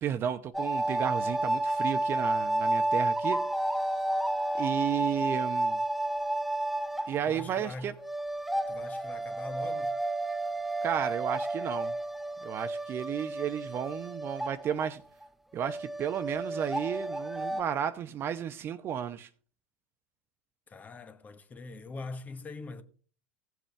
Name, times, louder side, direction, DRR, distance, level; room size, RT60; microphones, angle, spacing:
voice 1, 0.0-3.4 4.5-5.8 7.1-7.9 10.8-12.0 12.4-15.0 15.5-19.3, right 9 dB, 35° right, 0.8 m, -33 dB
sound 1, 0.5-14.9 15.2-15.3 15.6-17.6, right 1 dB, ahead, 0.6 m, -31 dB
voice 2, 7.2-8.0 8.7-9.9 20.7-22.8, left 3 dB, 25° left, 1.0 m, -42 dB
16.0 x 7.7 x 3.3 m
hypercardioid pair, 85°, 6 cm